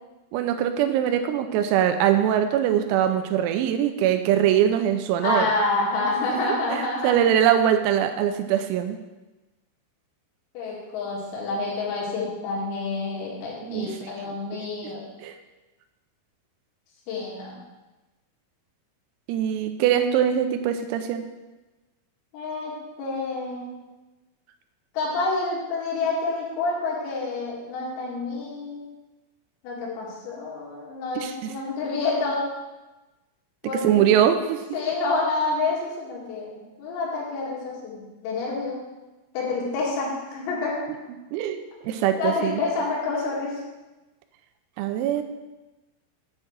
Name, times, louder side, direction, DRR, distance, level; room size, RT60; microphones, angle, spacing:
voice 1, 0.3-5.5 6.7-9.0 13.6-14.4 14.8-14.9 15.2-15.3 19.3-21.3 31.2-31.5 33.8-34.6 41.3-42.6 44.8-45.2, right 10 dB, 90° right, 7 dB, 3.4 m, -22 dB
voice 2, 5.2-7.2 10.5-15.0 17.1-17.6 22.3-22.7 23.0-23.8 24.9-28.8 29.6-32.4 33.6-34.2 34.7-38.8 39.3-40.8 42.2-43.6, left 3 dB, 80° left, -5 dB, 4.9 m, -28 dB
9.7 x 4.6 x 7.6 m, 1.1 s
omnidirectional pair, 6.0 m